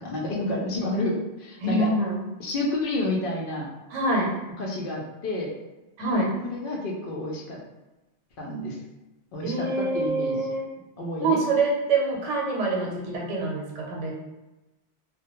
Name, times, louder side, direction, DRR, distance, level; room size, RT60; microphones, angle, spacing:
voice 1, 0.0-1.9 2.4-3.7 4.6-5.5 6.4-7.6 8.4-8.8 9.3-10.5 11.0-11.4, left 2 dB, 60° left, -2 dB, 0.6 m, -29 dB
voice 2, 1.6-2.2 3.9-4.4 6.0-6.3 9.4-10.7 11.2-14.1, right 2 dB, 80° right, -2 dB, 1.0 m, -25 dB
2.2 x 2.2 x 2.9 m, 1.0 s
omnidirectional pair, 1.2 m